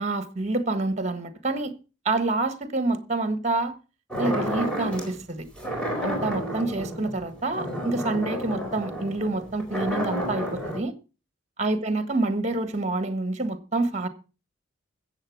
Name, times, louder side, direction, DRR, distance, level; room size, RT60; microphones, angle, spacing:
voice 1, 0.0-1.7 2.0-3.7 4.2-5.5 6.0-10.9 11.6-14.1, right 2 dB, 35° right, 1.5 m, -27 dB
sound 1, 4.1-5.1 5.6-10.8, equal, 5° left, 4.1 m, -31 dB
14.5 x 8.0 x 6.1 m
head